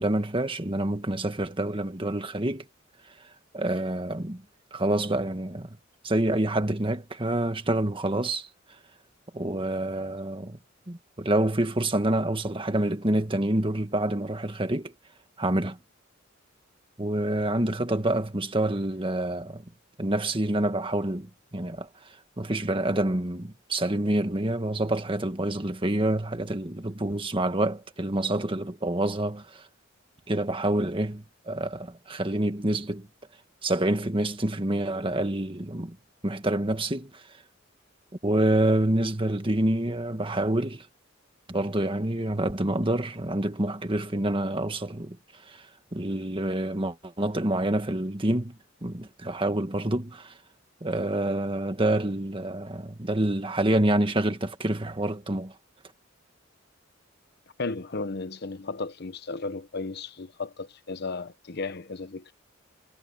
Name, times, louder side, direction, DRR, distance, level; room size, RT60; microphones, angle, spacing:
voice 1, 0.0-2.6 3.5-4.4 4.7-5.8 6.0-8.5 9.3-10.6 10.9-14.9 15.4-15.8 17.0-19.6 20.0-21.9 22.4-29.7 30.3-33.1 33.6-36.0 36.2-37.2 38.2-40.9 41.5-45.2 45.5-45.7 45.9-50.3 50.8-55.5, right 1 dB, 25° right, 1.7 m, -27 dB
voice 2, 57.6-62.3, left 3 dB, 55° left, 0.9 m, -34 dB
head